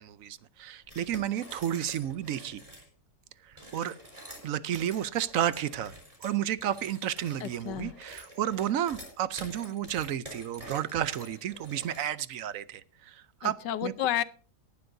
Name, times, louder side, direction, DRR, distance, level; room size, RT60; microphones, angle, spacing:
voice 1, 0.0-2.6 3.4-3.9 4.4-5.9 6.2-13.9, right 10 dB, 65° right, 0.9 m, -32 dB
sound 1, 0.8-2.9 3.5-12.3, equal, 20° right, 3.8 m, -48 dB
voice 2, 7.4-7.9 13.4-14.2, left 11 dB, 90° left, 1.4 m, -31 dB
18.0 x 11.5 x 2.6 m
omnidirectional pair, 1.8 m